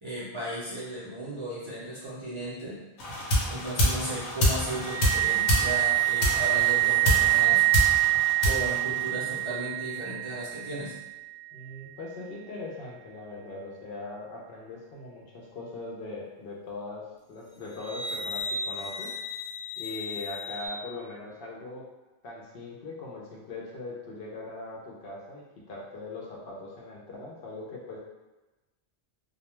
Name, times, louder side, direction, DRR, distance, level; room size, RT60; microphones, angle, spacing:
voice 1, 0.0-2.8 3.5-7.6 8.4-10.9, right 1 dB, 35° right, -10 dB, 0.5 m, -35 dB
sound 1, 3.0-9.5, equal, 90° left, 1.0 m, -28 dB
sound 2, 4.7-11.0 17.7-20.7, right 14 dB, 85° right, 0.9 m, -27 dB
voice 2, 11.5-17.0 17.3-19.1 19.8-21.9 22.2-28.0, left 2 dB, 65° left, -4 dB, 0.7 m, -40 dB
2.2 x 2.1 x 2.9 m, 1.1 s
omnidirectional pair, 1.1 m